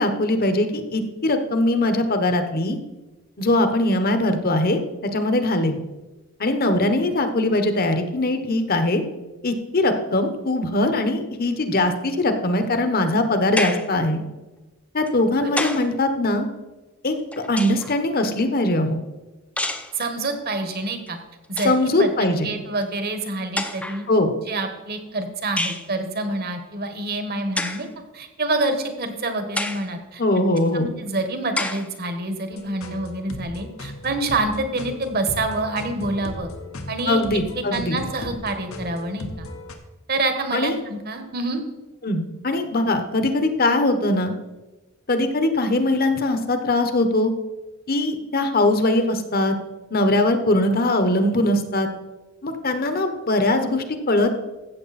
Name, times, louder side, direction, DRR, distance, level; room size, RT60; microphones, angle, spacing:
voice 1, 0.0-2.8 3.4-4.8 5.1-5.8 6.4-9.0 9.4-14.2 14.9-16.5 17.0-17.1 17.5-19.0 21.6-22.5 24.1-24.3 30.2-30.9 37.0-38.0 40.5-40.8 42.0-44.3 45.1-47.3 47.9-49.6 49.9-51.9 52.4-54.4, left 2 dB, 45° left, 8 dB, 1.1 m, -21 dB
sound 1, 13.6-14.0 15.1-15.9 17.1-18.0 19.6-20.0 21.1-21.2 21.4-21.8 22.8-22.9 23.6-24.1 25.6-25.9 27.6-27.9 28.6-28.7 29.6-29.9 30.6-30.7 31.6-31.9, left 2 dB, 5° left, 0.7 m, -28 dB
voice 2, 19.9-21.2 21.5-24.0 24.5-27.9 28.1-30.2 30.7-36.5 36.9-37.2 37.5-39.5 40.1-41.6, right 2 dB, 50° right, 7 dB, 1.4 m, -27 dB
sound 2, 32.5-39.7, left 1 dB, 80° left, 1.4 m, -36 dB
14.5 x 7.9 x 4.2 m, 1.1 s
head